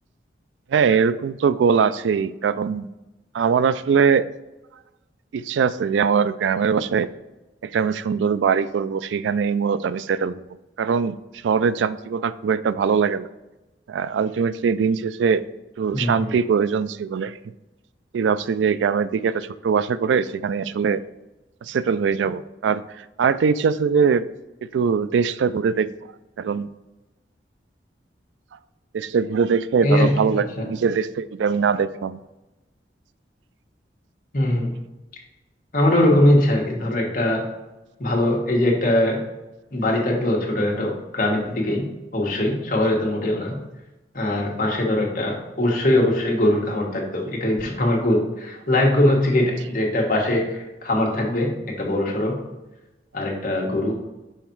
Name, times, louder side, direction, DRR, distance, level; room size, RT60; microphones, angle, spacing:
voice 1, 0.7-2.9 3.3-4.3 5.3-7.1 7.6-10.4 10.8-11.2 11.4-13.3 13.9-15.4 15.8-17.4 18.1-21.0 21.6-24.3 24.7-25.9 26.4-26.7 28.9-32.2, right 6 dB, 85° right, 16 dB, 0.3 m, -21 dB
voice 2, 15.9-16.3 29.8-30.7 34.3-34.7 35.7-37.4 38.0-39.2 39.7-41.8 42.1-43.6 44.1-52.3 53.1-53.9, left 1 dB, 50° left, -1 dB, 1.4 m, -21 dB
5.7 x 4.1 x 4.5 m, 1.0 s
head